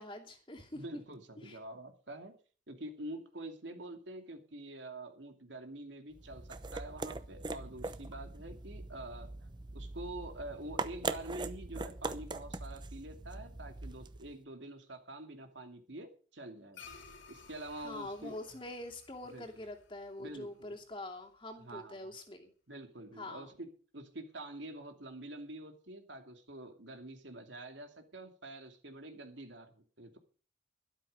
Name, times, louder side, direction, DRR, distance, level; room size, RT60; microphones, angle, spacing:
voice 1, 0.0-0.8 1.4-1.6 17.8-22.5 23.2-23.5, left 1 dB, 25° left, 1 dB, 2.6 m, -45 dB
voice 2, 0.7-2.3 2.7-9.3 9.7-16.8 17.3-18.4 19.3-19.6 20.2-20.7 21.6-22.2 22.7-23.7 23.9-30.2, right 1 dB, 70° right, 5 dB, 2.7 m, -46 dB
sound 1, 6.1-14.3, right 3 dB, 25° right, 0.8 m, -42 dB
sound 2, 16.7-21.4, left 5 dB, 80° left, 3.3 m, -57 dB
13.0 x 12.0 x 5.4 m, 0.39 s
head